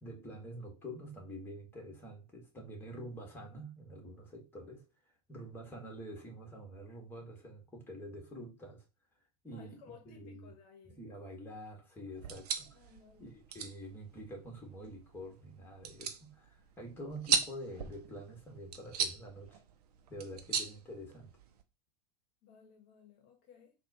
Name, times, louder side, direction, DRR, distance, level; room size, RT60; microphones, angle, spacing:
voice 1, 0.0-4.9 5.3-8.9 9.4-10.5 11.0-12.8 13.2-19.6 20.1-21.3, equal, 10° left, 1.4 m, -47 dB
voice 2, 9.5-11.0 12.7-13.3 22.4-23.7, left 6 dB, 45° left, 0.9 m, -58 dB
sound 1, 12.2-21.6, right 7 dB, 75° right, 0.6 m, -39 dB
4.0 x 2.3 x 2.8 m
hypercardioid pair, 95°, 20 cm